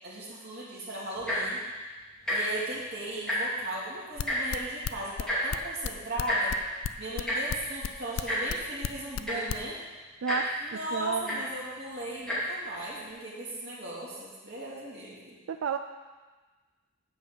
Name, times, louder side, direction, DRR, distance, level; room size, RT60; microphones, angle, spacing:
voice 1, 0.0-1.6 2.3-6.5 7.0-9.8 10.6-15.4, right 1 dB, 45° right, -7 dB, 3.1 m, -37 dB
Tick-tock, 1.1-1.5 2.2-2.4 2.7-2.8 3.1-3.6 4.3-4.4 5.3-5.4 6.3-6.4 7.3-7.4 8.3-8.4 9.0-9.1 9.2-9.6 10.3-10.4 11.3-11.4 12.2-12.4 13.1-13.2, equal, 5° left, 2.3 m, -30 dB
sound 1, 4.2-9.6, left 8 dB, 65° left, 0.3 m, -32 dB
voice 2, 10.2-10.5 10.9-11.3 15.5-15.8, right 6 dB, 70° right, 7 dB, 0.3 m, -30 dB
9.5 x 5.1 x 6.9 m, 1.3 s
head